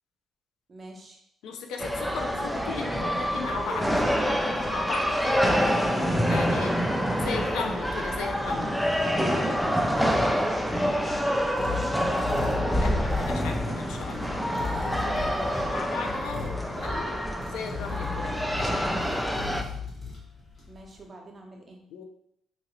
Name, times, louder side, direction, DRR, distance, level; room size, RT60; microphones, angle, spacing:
voice 1, 0.7-1.2 10.9-11.9 20.7-21.8, right 2 dB, 35° right, 1 dB, 0.7 m, -45 dB
voice 2, 1.4-6.8 7.2-8.8 12.7-19.3 21.9-22.0, left 5 dB, 90° left, 4 dB, 0.4 m, -37 dB
sound 1, 1.8-19.6, equal, ahead, 0.3 m, -27 dB
sound 2, 10.3-20.9, left 5 dB, 40° left, 1.4 m, -37 dB
2.8 x 2.6 x 2.9 m, 0.73 s
cardioid pair, 90°, 0 cm